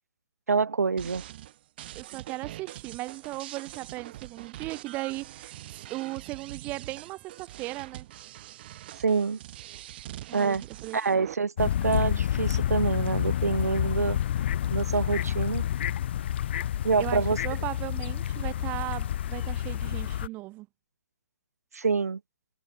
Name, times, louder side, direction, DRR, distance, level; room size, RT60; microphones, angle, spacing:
voice 1, 0.5-1.2 9.0-9.4 10.3-10.6 10.9-14.2 14.7-15.6 16.8-17.4 21.7-22.2, right 5 dB, 65° right, 1.2 m, -26 dB
sound 1, 1.0-11.3, right 14 dB, 35° right, 4.2 m, -44 dB
voice 2, 1.9-8.1 10.3-11.2 17.0-20.7, right 20 dB, 20° right, 1.0 m, -37 dB
sound 2, 11.6-20.3, left 11 dB, 40° left, 1.8 m, -29 dB
figure-of-eight pair, 130°, 9 cm